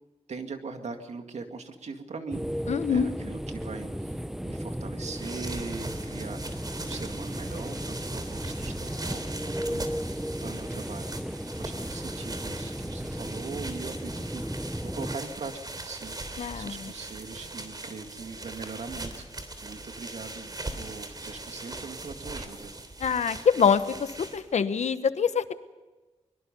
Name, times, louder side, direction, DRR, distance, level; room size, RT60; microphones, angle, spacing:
voice 1, 0.3-2.4 2.8-4.2 4.4-22.7, right 4 dB, 80° right, 5 dB, 2.2 m, -41 dB
sound 1, 2.3-15.2, equal, 5° right, 0.7 m, -35 dB
voice 2, 2.7-3.1 16.4-16.9 23.0-25.5, left 6 dB, 80° left, 12 dB, 1.1 m, -25 dB
sound 2, 5.0-24.6, right 2 dB, 35° right, 3.3 m, -40 dB
24.0 x 22.0 x 5.4 m, 1.2 s
wide cardioid pair, 85°, 11 cm